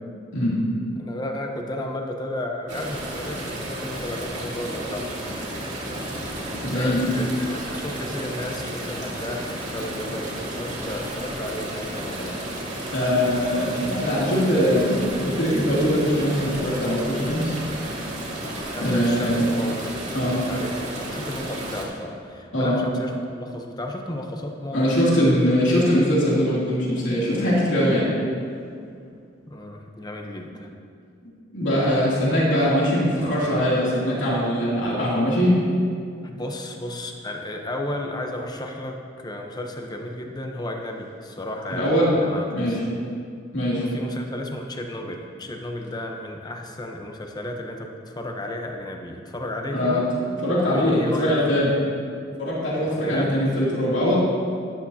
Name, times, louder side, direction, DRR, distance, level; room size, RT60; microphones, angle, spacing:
voice 1, 1.0-5.2 6.7-12.4 18.7-19.9 20.3-25.3 29.5-30.7 36.2-42.8 43.8-50.1 50.6-51.7 52.8-53.4, left 1 dB, 20° left, 2 dB, 0.9 m, -33 dB
sound 1, 2.7-21.8, right 1 dB, 40° right, 2.1 m, -32 dB
voice 2, 6.6-7.0 12.9-17.6 18.8-19.4 20.1-20.4 22.5-22.8 24.7-28.1 31.5-35.6 41.7-42.1 42.5-42.8 43.5-43.8 49.7-50.0 50.4-51.7 52.4-54.2, equal, 70° left, -7 dB, 2.9 m, -21 dB
13.0 x 11.0 x 2.9 m, 2.3 s
head